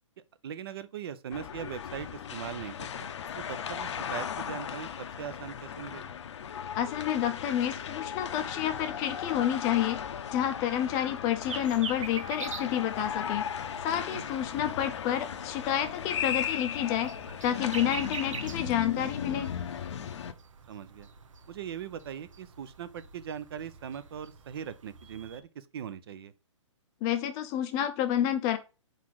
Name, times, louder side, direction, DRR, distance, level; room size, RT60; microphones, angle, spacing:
voice 1, 0.4-3.1 3.4-6.1 13.9-14.2 20.7-21.1 21.5-26.3, right 8 dB, 50° right, 0.6 m, -40 dB
sound 1, 1.3-20.3, left 8 dB, 60° left, 0.8 m, -37 dB
voice 2, 6.8-10.0 10.3-13.4 13.8-17.1 17.4-19.5 27.0-28.6, left 11 dB, 20° left, 0.6 m, -29 dB
sound 2, 11.4-25.4, right 5 dB, 75° right, 1.2 m, -45 dB
4.8 x 4.2 x 5.7 m
hypercardioid pair, 155°, 17 cm